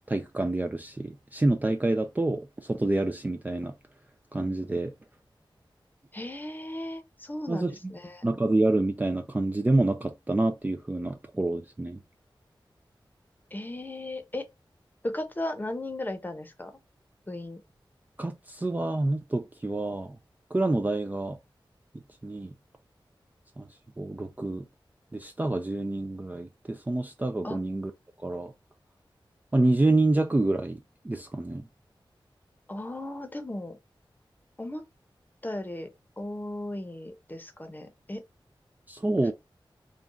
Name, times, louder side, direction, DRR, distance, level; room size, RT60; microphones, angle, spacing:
voice 1, 0.1-3.7 4.3-4.9 7.5-7.7 8.2-12.0 18.2-20.2 20.5-21.4 22.2-22.5 23.6-23.7 24.0-24.6 25.1-27.9 28.2-28.5 29.5-30.8 31.0-31.7 38.9-39.3, right 2 dB, 20° right, 0.4 m, -27 dB
voice 2, 6.1-8.2 13.5-14.5 15.0-16.7 17.3-17.6 27.4-27.6 32.7-33.8 34.6-34.8 35.4-35.9 36.2-38.2, left 1 dB, 20° left, 0.8 m, -36 dB
3.8 x 2.3 x 3.7 m
wide cardioid pair, 80°, 9 cm